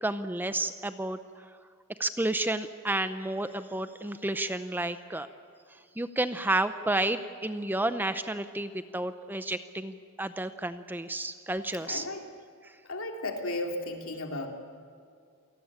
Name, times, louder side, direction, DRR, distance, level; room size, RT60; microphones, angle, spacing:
voice 1, 0.0-1.2 2.0-5.3 6.0-12.1, right 2 dB, 10° right, 11 dB, 0.6 m, -31 dB
voice 2, 11.8-12.3 12.8-14.5, left 2 dB, 65° left, 3 dB, 3.1 m, -34 dB
28.0 x 18.5 x 8.8 m, 2.3 s
head